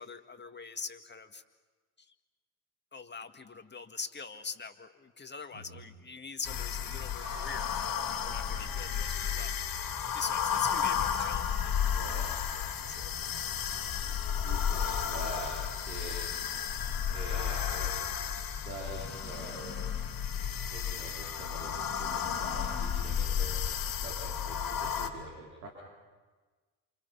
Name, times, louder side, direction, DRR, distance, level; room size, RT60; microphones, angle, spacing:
voice 1, 0.0-1.4 2.0-2.1 2.9-9.5 10.1-13.1 16.7-17.0, left 4 dB, 25° left, 7 dB, 2.1 m, -43 dB
voice 2, 5.5-5.8 11.9-12.3 14.4-15.6 15.9-16.2 17.1-18.0 18.6-19.8 20.6-23.6 24.0-25.7, right 2 dB, 85° right, -2 dB, 4.0 m, -44 dB
sound 1, 6.4-25.1, left 8 dB, 50° left, 3.0 m, -33 dB
sound 2, 7.2-13.5 14.1-15.4 16.9-17.0, right 1 dB, 40° right, 7.3 m, -52 dB
29.0 x 28.0 x 5.7 m, 1.4 s
hypercardioid pair, 60°, 44 cm